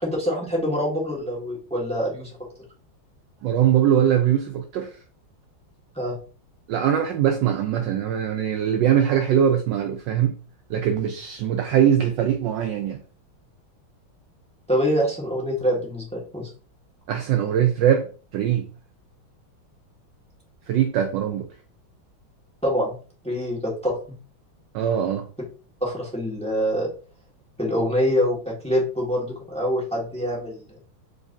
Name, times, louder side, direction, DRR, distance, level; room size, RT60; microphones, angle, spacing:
voice 1, 0.0-2.3 5.9-6.2 14.7-16.5 22.6-23.0 23.2-24.0 25.8-26.9 27.6-30.7, equal, 5° left, 1.4 m, -25 dB
voice 2, 3.4-5.0 6.7-10.4 10.7-13.0 17.1-18.1 18.3-18.7 20.7-21.5 24.7-25.3, right 9 dB, 75° right, 1.1 m, -21 dB
4.7 x 4.0 x 2.6 m
omnidirectional pair, 2.3 m